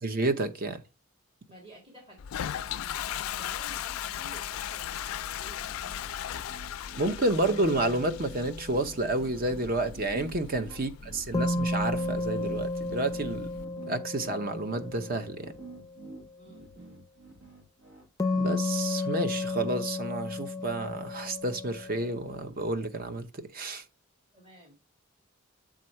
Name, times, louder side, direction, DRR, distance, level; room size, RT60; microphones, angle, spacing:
voice 1, 0.0-0.8 7.0-13.5 13.8-15.5 18.3-23.3 23.5-23.8, right 2 dB, 45° right, 0.8 m, -30 dB
voice 2, 1.5-6.3 7.3-7.5 10.7-10.9 16.4-17.0 17.3-17.6 24.3-24.8, right 1 dB, 25° right, 1.8 m, -53 dB
Toilet flush, 2.2-13.6, left 10 dB, 80° left, 0.3 m, -38 dB
sound 1, 5.5-18.1, right 3 dB, 80° right, 1.5 m, -49 dB
sound 2, 7.4-8.9 11.3-15.8 18.2-22.4, left 2 dB, 15° left, 0.5 m, -33 dB
7.5 x 3.8 x 4.3 m
head